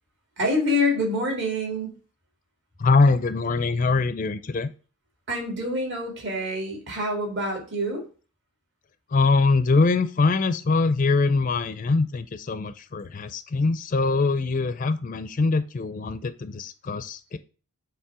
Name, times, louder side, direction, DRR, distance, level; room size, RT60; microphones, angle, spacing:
voice 1, 0.4-1.9 5.3-8.0, left 1 dB, 55° right, 0 dB, 2.3 m, -26 dB
voice 2, 2.8-4.7 9.1-17.4, left 3 dB, 35° left, 12 dB, 0.4 m, -23 dB
7.2 x 3.1 x 4.7 m, 0.36 s
head